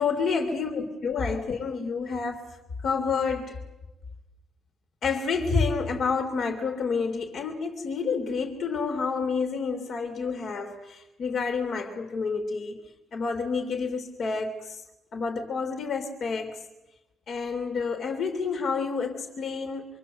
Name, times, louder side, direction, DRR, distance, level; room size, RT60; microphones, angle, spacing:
voice 1, 0.0-2.5 2.8-3.6 5.0-12.8 13.1-14.8 15.1-16.6 17.3-19.9, left 5 dB, 60° left, 3.4 m, -29 dB
25.5 x 25.0 x 8.1 m
cardioid pair, 90°, 0 cm